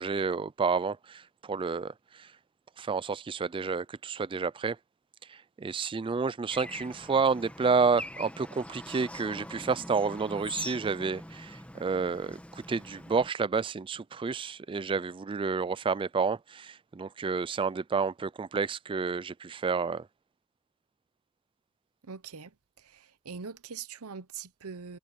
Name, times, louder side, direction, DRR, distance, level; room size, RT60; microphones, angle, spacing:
voice 1, 0.0-2.3 2.8-4.8 5.3-20.1, right 5 dB, 25° right, 0.3 m, -30 dB
Bird / Traffic noise roadway noise, 6.5-13.3, left 1 dB, 5° left, 1.6 m, -43 dB
voice 2, 22.0-22.5 22.8-25.0, right 5 dB, 70° right, 0.9 m, -42 dB
head